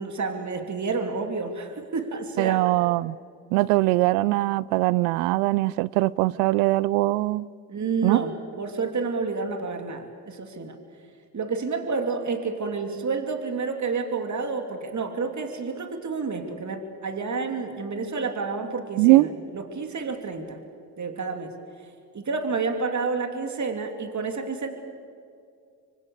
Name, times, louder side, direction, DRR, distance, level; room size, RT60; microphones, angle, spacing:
voice 1, 0.0-2.7 7.7-10.8 11.3-20.6 21.0-21.5 22.1-24.7, right 4 dB, 35° right, 3.1 m, -29 dB
voice 2, 2.4-3.2 3.5-7.5 8.0-8.2 19.0-19.3, right 19 dB, 80° right, 0.6 m, -21 dB
26.5 x 24.0 x 6.7 m
hypercardioid pair, 55°, 47 cm